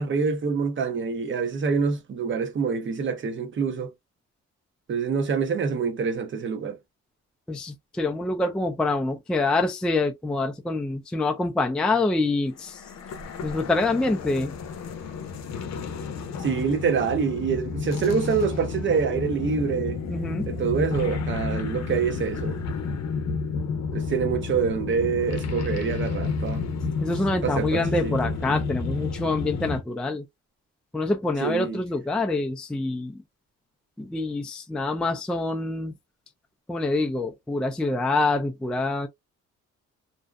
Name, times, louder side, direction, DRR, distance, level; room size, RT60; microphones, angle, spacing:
voice 1, 0.0-3.9 4.9-6.8 16.4-20.0 20.5-22.6 23.9-26.6 27.4-28.3 31.4-31.8, right 6 dB, 40° right, 0.7 m, -26 dB
voice 2, 7.5-12.8 13.4-14.5 20.1-20.5 27.0-30.2 30.9-33.2 34.0-35.9 36.7-39.1, left 2 dB, 5° left, 0.3 m, -26 dB
sound 1, 12.6-29.8, left 4 dB, 60° left, 0.7 m, -31 dB
2.6 x 2.1 x 2.3 m
cardioid pair, 90°, 30 cm